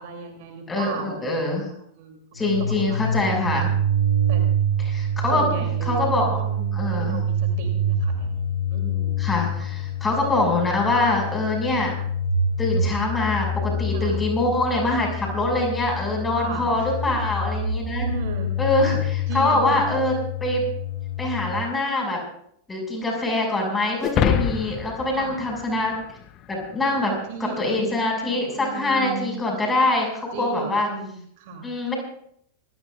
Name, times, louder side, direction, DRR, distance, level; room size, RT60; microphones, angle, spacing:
voice 1, 0.0-1.6 2.0-2.5 2.8-3.7 4.3-4.5 5.3-9.2 9.7-9.8 13.9-14.2 16.3-16.9 18.0-18.6 19.3-19.9 25.1-25.4 26.9-29.4 30.3-31.7, right 4 dB, 50° right, 4 dB, 3.2 m, -36 dB
voice 2, 0.7-1.7 2.3-3.7 4.9-5.5 5.8-6.4 6.7-7.2 9.2-11.9 12.6-18.1 18.6-20.1 20.4-20.7 21.2-22.2 22.7-26.0 26.5-27.1 27.6-30.9 31.6-32.0, left 2 dB, 15° left, 1 dB, 6.3 m, -24 dB
sound 1, 2.3-21.5, right 1 dB, 85° left, 5.0 m, -26 dB
sound 2, 24.0-26.5, left 10 dB, 35° left, 0.9 m, -25 dB
26.0 x 16.5 x 2.5 m, 0.68 s
figure-of-eight pair, 90°, 0 cm